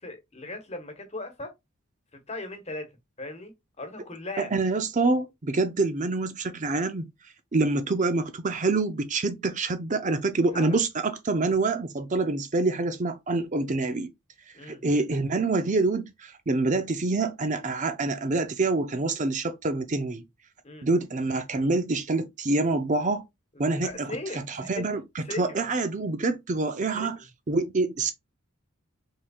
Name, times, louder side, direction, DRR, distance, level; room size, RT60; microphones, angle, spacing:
voice 1, 0.0-1.5 2.1-2.9 3.2-3.5 3.8-4.5 10.5-10.8 14.5-14.8 20.6-20.9 23.8-24.8 25.2-25.6 26.9-27.3, left 2 dB, 30° left, 1.3 m, -38 dB
voice 2, 4.4-7.1 7.5-14.1 14.7-20.2 20.8-23.3 23.6-24.1 24.5-25.0 25.4-27.2 27.5-28.1, right 3 dB, 35° right, 0.6 m, -26 dB
5.5 x 3.6 x 2.3 m
head